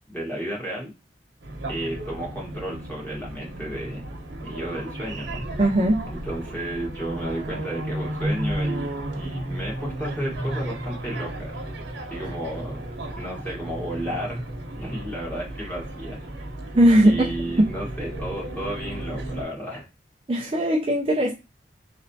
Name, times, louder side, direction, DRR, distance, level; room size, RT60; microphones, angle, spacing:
voice 1, 0.1-0.9 1.7-4.0 4.4-5.4 6.2-11.5 12.1-12.8 13.2-14.4 14.8-16.2 17.0-19.8, right 1 dB, 10° left, 1.4 m, -32 dB
sound 1, 1.4-19.4, right 1 dB, 85° right, 1.0 m, -33 dB
voice 2, 5.6-6.0 16.7-17.3 20.3-21.3, right 1 dB, 30° right, 0.5 m, -19 dB
4.1 x 3.1 x 2.7 m
head